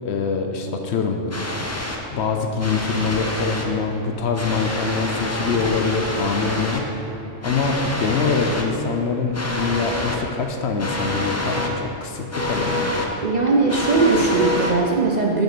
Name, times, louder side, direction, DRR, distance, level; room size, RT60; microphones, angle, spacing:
voice 1, 0.0-1.2 2.1-6.8 7.4-12.9, left 4 dB, 65° left, 4 dB, 0.8 m, -24 dB
sound 1, 1.3-2.0 2.6-3.7 4.4-6.8 7.4-8.6 9.3-10.2 10.8-11.7 12.3-13.1 13.7-14.7, left 1 dB, 20° left, 0.4 m, -26 dB
voice 2, 13.2-15.4, right 4 dB, 50° right, -1 dB, 0.6 m, -19 dB
7.3 x 5.2 x 6.0 m, 3.0 s
omnidirectional pair, 1.3 m